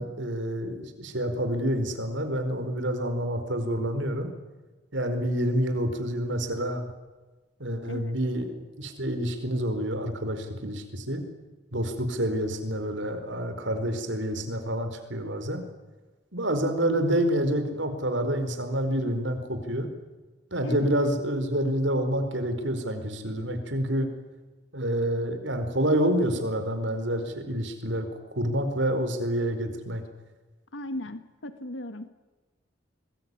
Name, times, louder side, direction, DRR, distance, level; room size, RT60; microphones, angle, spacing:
voice 1, 0.0-4.3 4.9-6.8 7.6-11.2 11.7-15.6 16.3-19.9 20.5-24.1 24.7-30.0, right 1 dB, 75° right, 8 dB, 4.5 m, -28 dB
voice 2, 30.7-32.1, left 1 dB, 80° left, 10 dB, 1.6 m, -37 dB
25.5 x 21.0 x 9.8 m, 1.2 s
head